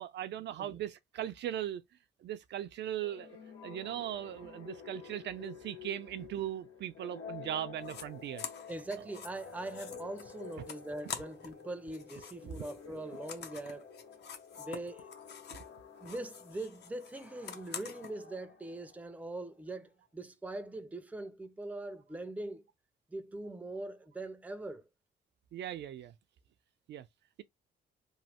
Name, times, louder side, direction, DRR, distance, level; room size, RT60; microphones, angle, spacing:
voice 1, 0.0-1.8 2.2-3.4 3.6-8.4 12.4-12.5 25.5-26.1 26.9-27.1, right 11 dB, 60° right, 0.4 m, -39 dB
sound 1, 3.0-19.4, left 6 dB, 85° left, 1.6 m, -50 dB
sound 2, 7.8-8.0 8.4-11.6 11.9-15.7 16.0-18.1, left 7 dB, 60° left, 0.6 m, -46 dB
voice 2, 8.7-13.9 14.6-15.1 16.0-22.7 23.1-24.9, right 2 dB, 5° right, 0.5 m, -42 dB
3.1 x 2.0 x 2.8 m
cardioid pair, 90°, 20 cm